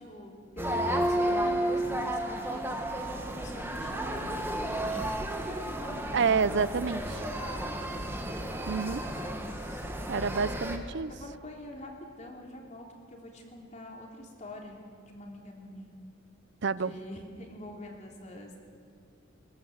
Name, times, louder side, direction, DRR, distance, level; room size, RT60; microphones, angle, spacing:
voice 1, 0.0-2.7 3.2-6.4 7.1-7.8 9.0-9.9 10.3-10.6 11.1-11.9 12.2-15.9 16.7-18.6, left 1 dB, 35° left, 0 dB, 3.4 m, -46 dB
sound 1, 0.6-10.8, right 1 dB, 10° right, 1.6 m, -32 dB
voice 2, 6.1-7.2 8.7-9.0 10.1-11.1 16.6-16.9, right 5 dB, 60° right, 17 dB, 0.6 m, -28 dB
21.5 x 18.5 x 8.0 m, 2.3 s
head